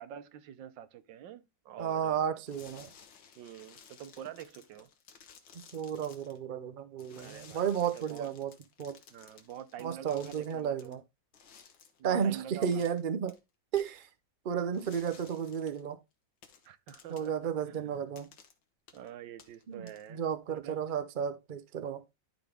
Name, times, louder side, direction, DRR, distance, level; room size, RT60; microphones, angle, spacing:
voice 1, 0.0-2.4 3.4-4.9 7.1-8.3 9.1-10.9 12.0-12.8 16.6-18.0 18.9-20.2 20.5-20.8, right 10 dB, 80° right, 1.5 m, -46 dB
voice 2, 1.8-2.9 5.7-8.5 8.8-9.0 9.8-11.0 12.0-13.4 13.7-14.1 14.4-16.0 17.1-18.3 19.7-22.0, right 8 dB, 65° right, 0.5 m, -33 dB
sound 1, 2.5-6.4 7.0-10.9 11.3-12.0 12.6-13.0 13.3-13.4 13.8-14.1 14.7-15.8 16.4-17.4 18.2-18.5 18.9-19.1 19.4-20.3, left 7 dB, 85° left, 1.8 m, -56 dB
11.5 x 4.0 x 3.5 m
omnidirectional pair, 2.0 m